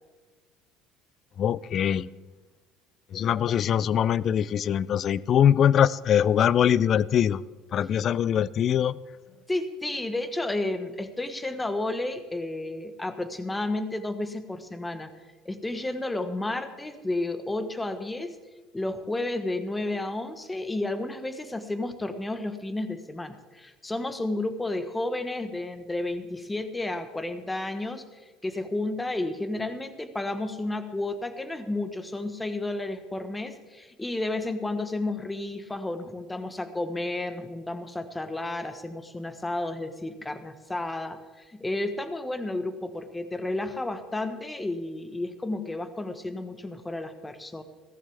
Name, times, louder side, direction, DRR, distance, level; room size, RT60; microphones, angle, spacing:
voice 1, 1.4-2.1 3.1-7.4 7.7-9.0, left 9 dB, 50° left, 21 dB, 0.4 m, -22 dB
voice 2, 9.5-15.1 15.4-18.3 18.7-47.6, left 2 dB, 10° left, 10 dB, 1.2 m, -32 dB
16.0 x 14.0 x 3.5 m, 1.3 s
supercardioid pair, 95°, 0 cm